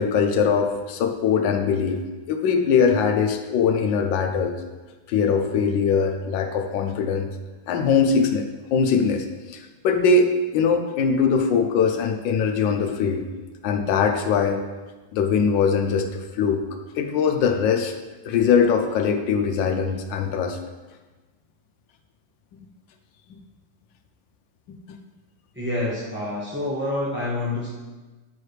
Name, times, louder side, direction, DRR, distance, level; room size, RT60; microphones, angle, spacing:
voice 1, 0.0-2.0 2.3-4.5 5.1-7.3 7.7-13.3 13.6-14.6 15.1-16.6 16.9-17.9 18.2-20.6 24.9-25.0, left 5 dB, 75° left, 5 dB, 1.3 m, -21 dB
voice 2, 25.5-27.7, left 2 dB, 10° right, -8 dB, 0.7 m, -27 dB
9.5 x 4.6 x 3.2 m, 1.2 s
omnidirectional pair, 2.1 m